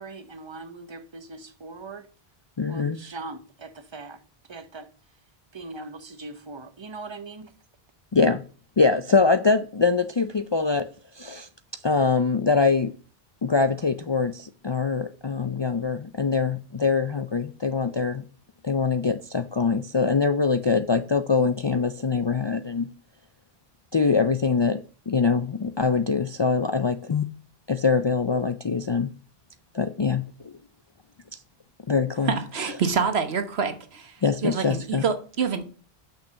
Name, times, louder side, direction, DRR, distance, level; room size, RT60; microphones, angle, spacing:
voice 1, 0.0-2.1 2.7-4.2 4.5-4.9 5.5-7.5, right 3 dB, 30° right, 0.9 m, -40 dB
voice 2, 2.6-3.0 8.1-8.4 8.8-10.9 11.2-11.5 11.8-12.9 13.4-18.2 18.6-22.9 23.9-24.8 25.1-27.2 27.7-29.1 29.7-30.5 31.9-32.3 34.2-35.0, left 4 dB, 45° left, 0.3 m, -23 dB
voice 3, 32.3-34.2 34.4-35.6, right 6 dB, 85° right, 1.4 m, -26 dB
6.4 x 5.8 x 6.8 m
omnidirectional pair, 1.0 m